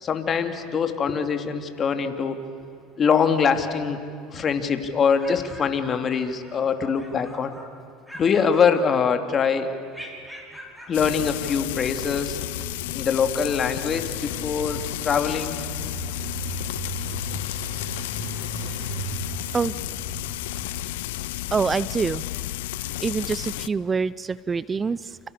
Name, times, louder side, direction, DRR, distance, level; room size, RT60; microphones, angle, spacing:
voice 1, 0.0-2.4 3.0-4.0 4.3-7.6 8.1-9.7 10.9-12.4 12.9-15.6, left 6 dB, 35° left, 7 dB, 2.8 m, -23 dB
sound 1, 4.9-6.6 6.9-7.7 8.0-9.3 9.9-11.0, equal, ahead, 5.3 m, -43 dB
Frying (food), 10.9-23.7, left 16 dB, 80° left, 0.6 m, -32 dB
Engine, 13.2-21.2, right 5 dB, 85° right, 2.5 m, -38 dB
voice 2, 21.5-22.2 23.0-25.2, right 5 dB, 25° right, 19 dB, 0.6 m, -25 dB
30.0 x 29.0 x 6.8 m, 2.5 s
supercardioid pair, 95°, 0 cm